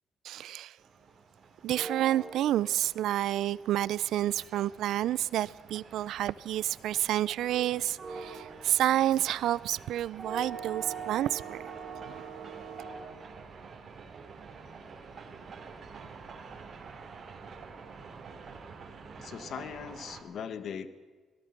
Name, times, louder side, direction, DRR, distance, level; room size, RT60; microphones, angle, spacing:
voice 1, 0.2-0.8 1.6-11.6 12.0-12.2, right 13 dB, 80° right, 0.5 m, -29 dB
sound 1, 0.8-20.2, right 5 dB, 45° right, 3.5 m, -45 dB
voice 2, 19.2-20.9, left 7 dB, 65° left, 1.6 m, -39 dB
25.5 x 17.5 x 6.0 m
cardioid pair, 90°, 0 cm